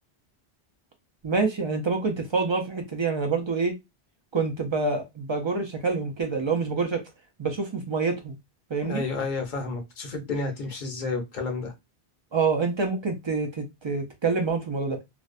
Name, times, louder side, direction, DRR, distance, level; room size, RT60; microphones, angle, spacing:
voice 1, 1.2-3.7 4.3-7.0 7.4-8.4 8.7-9.0 12.3-15.0, right 4 dB, 45° right, 0.3 m, -26 dB
voice 2, 8.8-11.7, left 3 dB, 50° left, 0.7 m, -31 dB
2.5 x 2.1 x 2.4 m
omnidirectional pair, 1.1 m